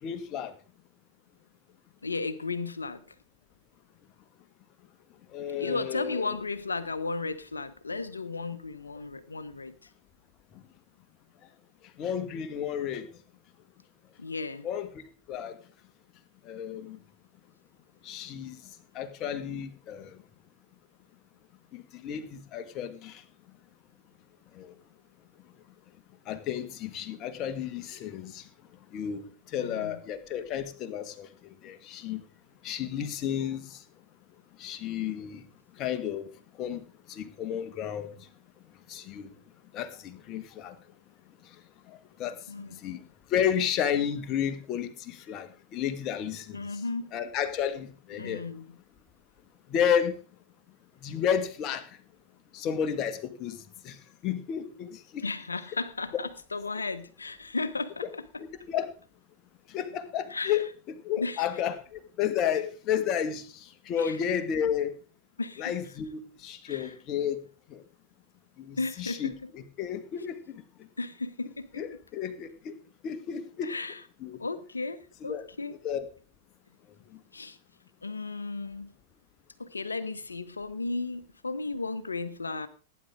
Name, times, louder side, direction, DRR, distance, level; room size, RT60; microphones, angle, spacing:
voice 1, 0.0-0.5 5.3-6.4 12.0-13.1 14.6-14.9 15.3-15.6 16.4-17.0 18.0-18.6 18.9-20.2 21.7-23.2 24.5-24.7 26.3-28.5 28.9-32.2 32.6-33.8 34.6-35.4 35.8-36.3 36.6-38.3 38.9-39.3 39.7-40.8 41.9-43.0 43.3-46.6 47.1-48.4 49.7-50.1 51.0-51.9 52.5-54.0 54.2-55.2 58.4-58.9 59.7-64.9 65.6-67.4 67.7-67.8 68.6-70.6 71.8-72.7 73.0-73.7 74.2-74.4 75.2-75.4 75.8-76.1, left 9 dB, 35° left, 9 dB, 1.9 m, -32 dB
voice 2, 2.0-3.0 5.6-9.9 14.2-14.7 29.6-30.0 42.5-42.8 46.5-47.1 48.2-48.7 55.2-58.1 58.3-58.4 60.3-60.6 61.2-61.4 64.0-64.2 65.4-65.7 66.7-66.9 68.8-69.3 71.0-71.8 73.6-74.0 74.4-75.7 77.3-77.6 78.0-78.9 79.6-82.7, left 3 dB, 80° left, 14 dB, 1.1 m, -34 dB
17.5 x 9.9 x 3.8 m, 0.38 s
figure-of-eight pair, 95°, 0 cm